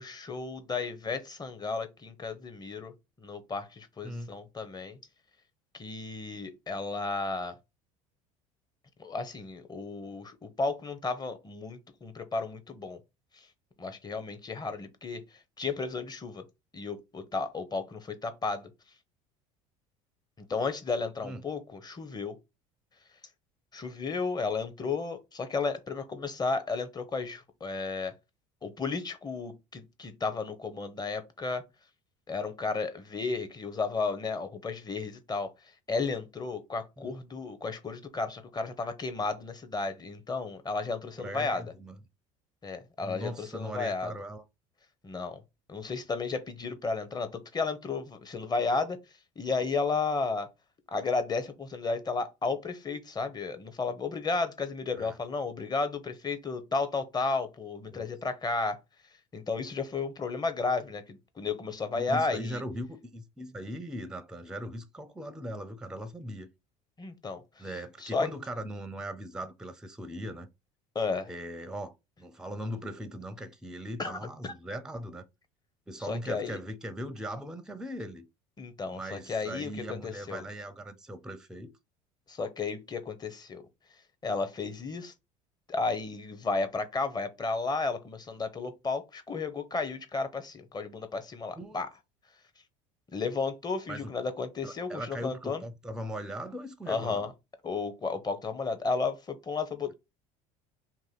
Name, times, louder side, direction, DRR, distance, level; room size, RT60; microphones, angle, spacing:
voice 1, 0.0-2.9 3.2-5.0 5.7-7.5 9.0-13.0 13.4-13.5 13.8-15.2 15.6-16.4 16.7-18.7 20.5-22.4 23.7-28.1 28.6-31.6 32.3-35.5 35.9-41.6 42.6-44.1 45.0-45.4 45.7-49.0 49.4-50.5 50.9-58.8 59.3-62.6 67.0-67.6 68.0-68.3 70.9-71.3 74.0-74.2 74.4-74.5 76.1-76.6 78.6-80.4 82.3-83.6 84.2-85.1 85.7-91.9 93.1-95.6 96.9-97.3 97.6-99.9, left 4 dB, 25° left, 0.8 m, -33 dB
voice 2, 41.2-42.0 43.0-44.4 54.9-55.2 57.9-58.1 61.9-66.5 67.6-70.5 71.3-71.9 72.2-75.2 75.9-78.2 78.9-81.7 91.6-91.8 93.9-94.1 94.6-97.2, equal, 5° right, 0.6 m, -39 dB
2.9 x 2.6 x 4.0 m
hypercardioid pair, 75°, 17 cm